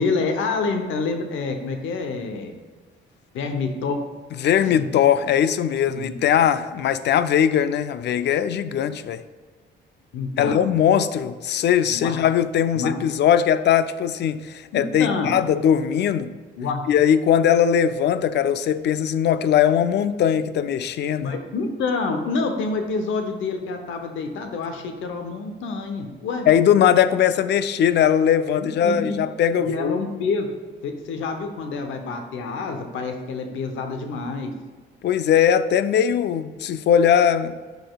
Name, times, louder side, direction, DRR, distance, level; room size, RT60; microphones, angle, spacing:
voice 1, 0.0-2.5 3.3-4.0 4.8-4.9 5.9-6.1 10.1-10.7 11.9-12.1 12.7-12.9 14.7-15.4 16.6-16.8 21.2-26.5 28.6-29.2 29.6-30.5 30.8-34.5, left 4 dB, 80° left, 5 dB, 0.8 m, -27 dB
voice 2, 4.4-9.2 10.4-16.3 16.9-21.3 26.5-30.0 35.0-37.6, left 9 dB, 60° left, 13 dB, 0.4 m, -20 dB
11.5 x 4.0 x 2.3 m, 1.4 s
cardioid pair, 90°, 20 cm